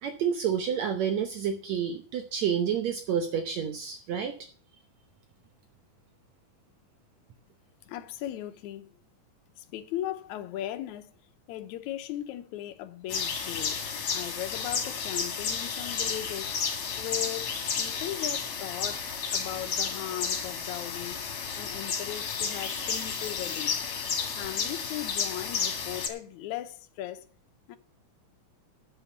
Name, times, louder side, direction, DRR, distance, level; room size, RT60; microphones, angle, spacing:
voice 1, 0.0-4.4, right 8 dB, 70° right, 2.0 m, -29 dB
voice 2, 7.9-9.0 9.6-11.1 11.5-13.8 14.1-16.5 17.0-23.8 24.4-27.2 27.7-27.8, left 13 dB, 75° left, 2.2 m, -38 dB
sound 1, 13.1-26.1, left 6 dB, 50° left, 2.5 m, -32 dB
8.1 x 8.0 x 7.8 m
omnidirectional pair, 3.6 m